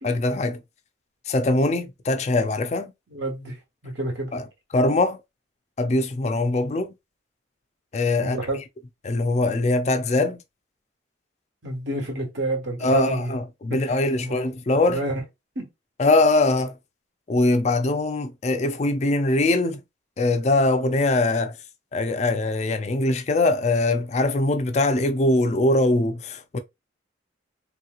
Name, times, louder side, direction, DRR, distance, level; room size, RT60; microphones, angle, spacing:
voice 1, 0.0-0.6 1.3-2.9 4.3-4.4 4.7-5.2 5.8-6.9 7.9-8.4 9.0-10.4 12.8-15.0 16.0-16.7 17.3-19.8 20.2-21.5 21.9-26.6, left 2 dB, 35° left, 0.3 m, -22 dB
voice 2, 3.1-4.3 8.2-8.6 11.6-13.3 13.7-14.5 14.9-15.2 15.5-15.7, right 2 dB, 65° right, 1.3 m, -29 dB
3.2 x 2.9 x 2.3 m
head